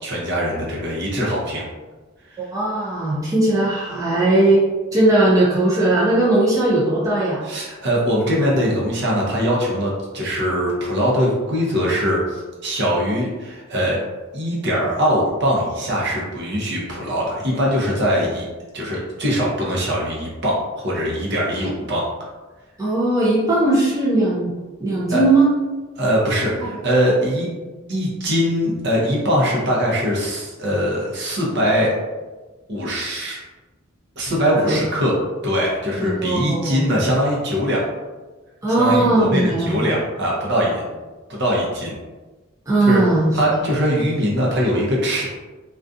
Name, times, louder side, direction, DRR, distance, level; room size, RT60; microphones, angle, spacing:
voice 1, 0.0-1.6 2.3-2.4 7.4-14.0 14.3-18.4 18.7-22.0 25.1-25.2 26.0-27.5 27.9-31.9 32.7-33.4 34.2-35.1 35.4-37.8 38.7-40.8 41.3-41.9 42.8-43.0 43.3-45.2, equal, 55° right, -4 dB, 0.7 m, -21 dB
voice 2, 2.5-4.6 4.9-7.4 22.8-24.5 24.8-25.5 34.6-34.8 36.0-36.9 38.6-39.8 42.7-43.6, right 2 dB, 15° right, -7 dB, 0.4 m, -18 dB
2.3 x 2.3 x 2.5 m, 1.2 s
head